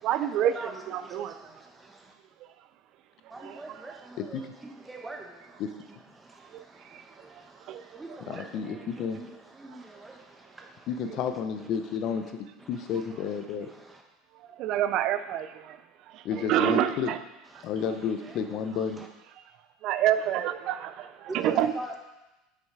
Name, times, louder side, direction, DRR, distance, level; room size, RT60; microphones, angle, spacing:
voice 1, 0.0-1.5 2.4-2.5 3.2-4.0 6.4-7.0 7.3-8.0 8.3-8.4 9.7-9.8 12.9-13.0 14.3-17.2 17.6-17.7 19.8-21.7, right 11 dB, 55° right, 0.4 m, -29 dB
voice 2, 4.3-5.2 21.4-22.0, right 2 dB, 15° right, 1.2 m, -39 dB
voice 3, 8.3-9.2 10.9-13.7 16.2-17.1 17.6-19.0, left 7 dB, 55° left, 0.7 m, -31 dB
6.1 x 5.5 x 4.7 m
hypercardioid pair, 90°, 0 cm